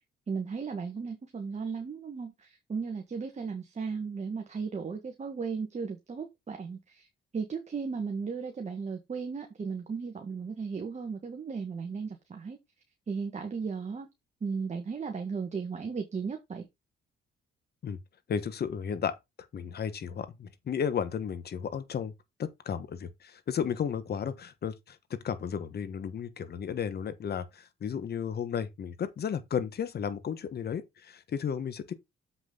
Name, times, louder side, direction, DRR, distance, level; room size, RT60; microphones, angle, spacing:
voice 1, 0.3-7.1 7.3-12.6 13.1-14.1 14.4-16.7, right 5 dB, 35° right, 1.6 m, -35 dB
voice 2, 18.3-19.1 19.5-22.1 22.4-31.9, left 7 dB, 55° left, 1.3 m, -33 dB
7.5 x 6.1 x 3.9 m
cardioid pair, 90°, 20 cm